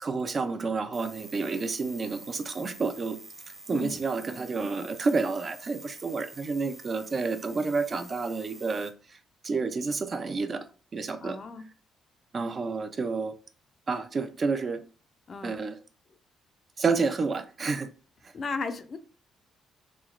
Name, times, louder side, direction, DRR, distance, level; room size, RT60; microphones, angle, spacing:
voice 1, 0.0-3.2 3.7-9.2 9.4-10.7 10.9-11.4 12.3-13.3 13.9-14.8 15.4-15.8 16.8-17.9 18.2-18.3, right 4 dB, 40° right, 0.4 m, -30 dB
sound 1, 0.9-8.9, right 2 dB, 20° right, 0.7 m, -48 dB
voice 2, 3.7-4.0 11.2-11.6 15.3-15.6 18.3-19.0, left 4 dB, 45° left, 0.4 m, -35 dB
3.1 x 2.7 x 2.4 m
cardioid pair, 90°, 0 cm